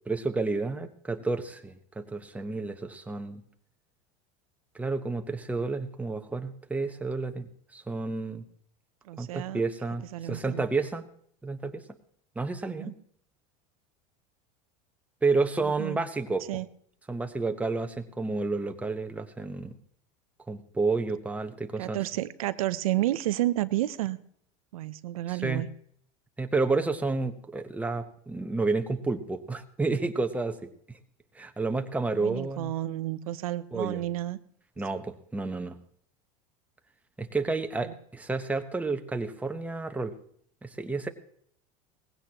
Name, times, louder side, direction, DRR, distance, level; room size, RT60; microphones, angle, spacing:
voice 1, 0.1-3.4 4.7-8.4 9.2-11.0 11.4-11.8 12.4-12.9 15.2-16.5 17.1-19.8 20.5-22.0 25.3-25.6 26.4-31.0 31.3-32.7 33.7-34.0 34.8-35.8 37.2-40.1 40.6-41.1, right 3 dB, 10° right, 7 dB, 0.9 m, -30 dB
voice 2, 9.1-9.6 10.1-10.6 12.7-12.9 15.6-16.0 16.5-16.7 21.8-24.2 24.7-25.7 32.2-34.4 34.9-35.0 37.8-37.9, right 15 dB, 90° right, 13 dB, 0.6 m, -31 dB
18.5 x 16.0 x 2.9 m, 0.62 s
supercardioid pair, 115°, 18 cm